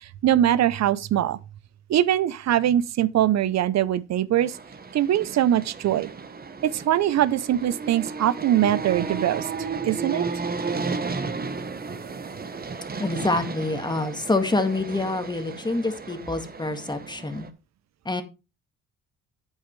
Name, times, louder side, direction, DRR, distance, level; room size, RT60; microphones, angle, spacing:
voice 1, 0.0-1.4 1.9-4.6 4.9-6.1 6.6-9.5 9.8-10.3, right 11 dB, 60° right, 0.7 m, -22 dB
sound 1, 4.4-17.5, right 4 dB, 30° right, 1.1 m, -34 dB
voice 2, 13.0-17.5 18.0-18.2, left 2 dB, 15° left, 1.8 m, -26 dB
9.1 x 8.5 x 3.3 m
cardioid pair, 90°, 30 cm